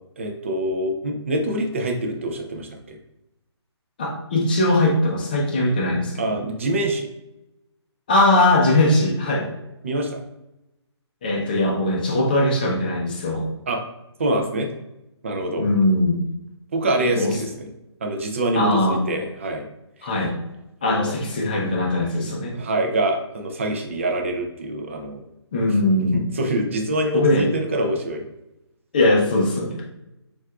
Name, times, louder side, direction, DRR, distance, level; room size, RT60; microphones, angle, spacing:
voice 1, 0.2-3.0 6.2-7.1 9.8-10.2 13.7-13.8 14.2-14.7 15.2-15.7 16.7-17.7 18.0-19.6 20.0-20.1 20.9-21.2 22.5-25.2 26.1-28.2, right 1 dB, 30° right, 3 dB, 0.4 m, -25 dB
voice 2, 4.0-6.4 8.1-9.5 11.2-13.5 15.6-16.2 17.0-17.4 18.5-19.0 20.0-20.4 20.8-22.6 25.5-26.2 27.1-27.5 28.9-29.8, left 1 dB, 20° left, -1 dB, 0.6 m, -20 dB
7.2 x 2.4 x 2.3 m, 0.92 s
hypercardioid pair, 175°, 15 cm